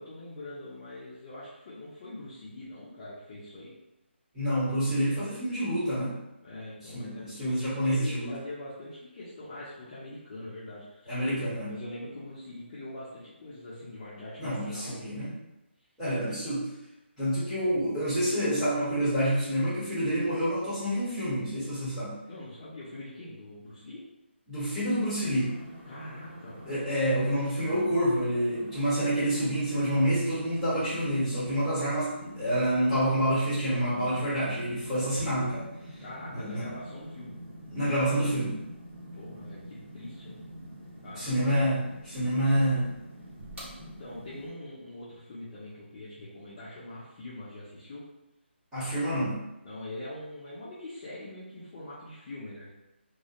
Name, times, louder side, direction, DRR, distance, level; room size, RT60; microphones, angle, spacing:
voice 1, 0.0-3.7 4.8-5.0 6.4-11.1 11.7-15.4 22.2-24.0 25.9-26.7 36.0-37.3 39.1-40.4 41.0-41.4 42.4-42.8 43.8-48.0 49.6-52.7, left 1 dB, 25° left, -10 dB, 0.5 m, -43 dB
voice 2, 4.3-6.2 6.9-8.3 11.1-11.7 14.4-15.3 16.0-16.7 17.2-22.1 24.5-25.6 26.7-35.7 36.3-36.7 37.7-38.6 41.2-43.0 48.7-49.4, equal, 5° right, -13 dB, 1.0 m, -28 dB
sound 1, 25.1-44.5, right 1 dB, 80° right, 1.2 m, -46 dB
2.3 x 2.1 x 2.8 m, 0.94 s
hypercardioid pair, 170°, 7 cm